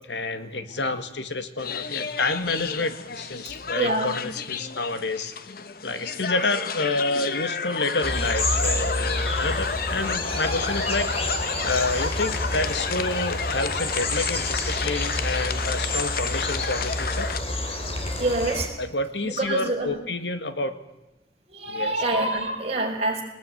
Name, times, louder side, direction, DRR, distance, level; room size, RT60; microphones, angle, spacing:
voice 1, 0.1-5.3 5.8-17.3 18.8-20.8 21.7-22.0, left 2 dB, 75° left, 10 dB, 1.9 m, -29 dB
sound 1, 1.6-17.4, left 5 dB, 50° left, 1.1 m, -31 dB
voice 2, 3.7-4.2 6.4-6.5 10.5-10.7 11.5-11.7 18.2-18.7 19.2-20.0 21.5-23.2, right 2 dB, 35° right, 0 dB, 5.5 m, -27 dB
sound 2, 8.0-18.7, left 2 dB, 35° left, 3.4 m, -29 dB
21.5 x 19.5 x 9.2 m, 1.0 s
head